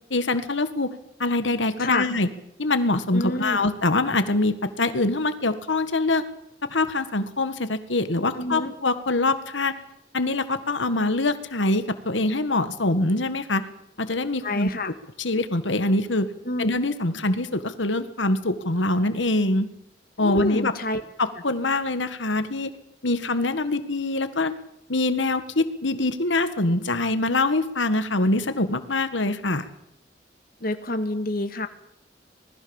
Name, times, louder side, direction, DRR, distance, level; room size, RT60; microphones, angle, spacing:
voice 1, 0.1-0.9 1.2-2.3 2.6-6.3 6.7-9.7 10.1-13.7 14.0-14.9 15.2-16.3 16.6-19.7 20.2-20.7 21.2-22.7 23.0-24.6 24.9-29.7, left 2 dB, 85° left, 10 dB, 1.8 m, -24 dB
voice 2, 3.1-3.6 8.4-8.7 14.4-14.9 16.5-16.7 20.2-21.0 30.6-31.7, left 2 dB, 50° left, 8 dB, 2.0 m, -27 dB
26.0 x 20.0 x 7.2 m, 0.76 s
head